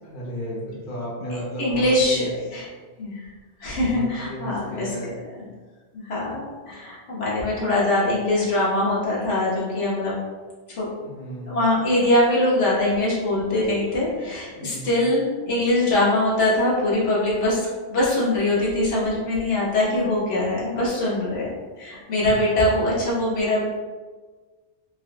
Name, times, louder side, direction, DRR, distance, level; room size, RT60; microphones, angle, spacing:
voice 1, 0.0-2.3 3.8-5.1 11.0-11.6 14.5-15.0, equal, 50° left, -6 dB, 1.0 m, -34 dB
voice 2, 1.3-2.7 3.0-3.3 3.6-5.1 5.4-5.5 5.9-10.1 10.7-10.9 11.5-21.5 21.8-23.6, left 1 dB, 85° left, -7 dB, 1.3 m, -23 dB
4.4 x 2.1 x 2.4 m, 1.4 s
omnidirectional pair, 1.2 m